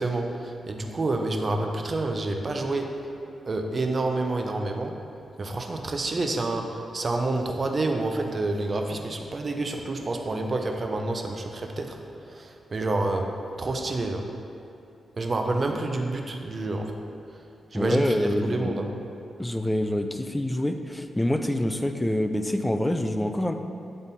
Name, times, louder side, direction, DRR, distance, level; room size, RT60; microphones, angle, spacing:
voice 1, 0.0-3.0 3.5-4.9 5.4-14.3 15.2-16.9 17.7-18.9, right 2 dB, 40° right, 3 dB, 0.6 m, -28 dB
voice 2, 17.7-18.7 19.4-23.5, left 1 dB, 10° left, 7 dB, 0.4 m, -26 dB
8.9 x 3.7 x 4.1 m, 2.7 s
cardioid pair, 95°, 0 cm